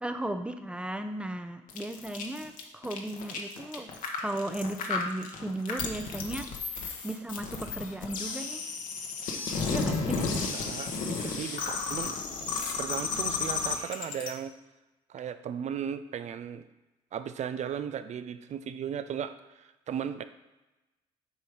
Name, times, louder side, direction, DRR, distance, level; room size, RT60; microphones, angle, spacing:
voice 1, 0.0-3.9 4.2-6.8 7.0-8.7 9.7-10.2, right 1 dB, 5° right, 8 dB, 0.8 m, -36 dB
sound 1, 1.7-14.3, left 4 dB, 70° left, 1.3 m, -33 dB
voice 2, 10.1-12.2 12.8-14.5 15.1-16.6 17.1-20.2, right 8 dB, 55° right, 11 dB, 0.6 m, -36 dB
8.3 x 4.6 x 5.0 m, 1.1 s
supercardioid pair, 70°, 14 cm